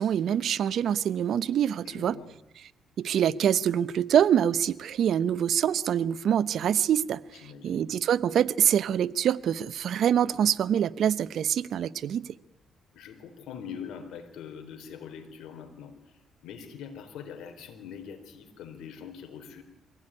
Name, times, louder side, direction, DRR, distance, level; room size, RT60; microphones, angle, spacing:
voice 1, 0.0-2.2 3.0-12.4, right 9 dB, 65° right, 0.8 m, -25 dB
voice 2, 1.8-2.3 7.3-7.9 12.9-19.6, left 7 dB, 80° left, 4.0 m, -43 dB
23.5 x 16.5 x 10.0 m
cardioid pair, 90°, 0 cm